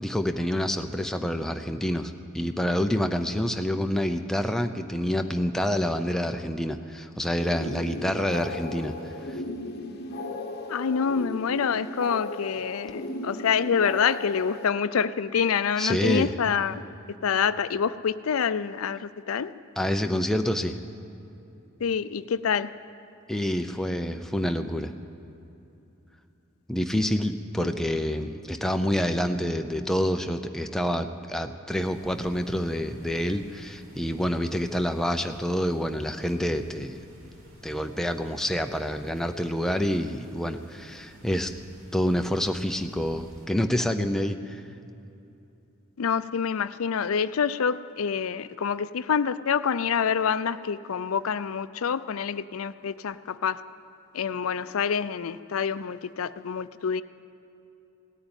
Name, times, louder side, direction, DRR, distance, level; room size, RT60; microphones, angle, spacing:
voice 1, 0.0-9.4 15.8-16.3 19.8-20.8 23.3-24.9 26.7-37.0 37.6-41.5 41.9-44.6, equal, ahead, 6 dB, 0.6 m, -27 dB
sound 1, 7.3-14.7, left 2 dB, 45° left, 1.1 m, -36 dB
voice 2, 10.7-16.8 17.2-19.5 21.8-22.7 27.6-27.7 46.0-53.6 54.1-57.0, left 6 dB, 75° left, 14 dB, 0.5 m, -27 dB
sound 2, 31.7-43.5, equal, 70° right, 2.9 m, -51 dB
17.0 x 9.2 x 8.9 m, 2.8 s
head